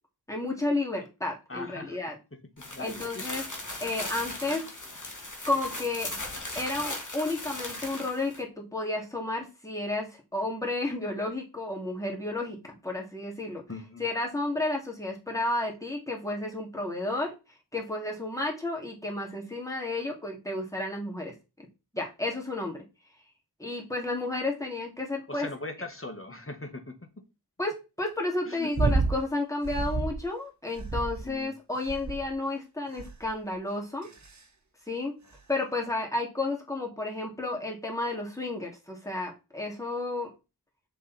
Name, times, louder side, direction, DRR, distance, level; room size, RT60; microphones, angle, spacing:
voice 1, 0.3-2.1 2.8-3.4 3.8-4.6 5.5-6.1 6.5-13.6 14.0-17.3 17.7-21.7 21.9-22.8 23.6-25.5 27.6-34.1 34.9-35.1 35.5-40.3, left 2 dB, 10° left, 3.1 m, -32 dB
voice 2, 1.5-2.0 2.3-3.2 3.8-4.1 4.5-4.7 13.7-14.1 25.3-27.2 28.5-28.9 31.2-31.5, left 2 dB, 35° left, 2.0 m, -40 dB
sound 1, 2.6-8.4, left 2 dB, 50° left, 2.6 m, -38 dB
sound 2, 28.7-29.2 29.6-30.2 30.8-31.4 31.9-32.3 33.0-33.3 34.0-34.4 35.3-35.4, right 3 dB, 45° right, 1.4 m, -29 dB
7.2 x 7.0 x 4.5 m
wide cardioid pair, 45°, 40 cm